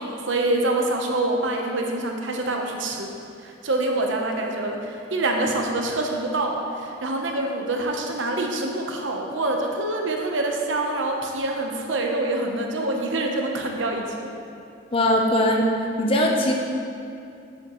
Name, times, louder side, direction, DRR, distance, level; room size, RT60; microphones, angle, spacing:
voice 1, 0.0-3.1 3.4-14.3, right 2 dB, 80° right, 1 dB, 0.9 m, -26 dB
voice 2, 14.9-15.7 16.0-16.5, left 1 dB, 30° left, 1 dB, 0.7 m, -20 dB
8.6 x 7.6 x 3.1 m, 2.5 s
head